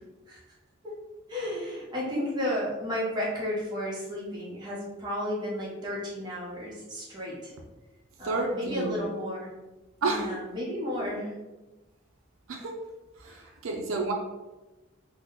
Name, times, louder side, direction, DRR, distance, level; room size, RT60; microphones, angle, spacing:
voice 1, 1.3-7.5 8.2-9.5 10.0-11.4 13.2-13.5, left 1 dB, 20° right, -6 dB, 0.9 m, -33 dB
voice 2, 8.2-9.0 10.0-10.3 12.5-12.8 13.2-14.1, right 3 dB, 75° right, 1 dB, 0.4 m, -30 dB
2.9 x 2.1 x 3.7 m, 1.1 s
head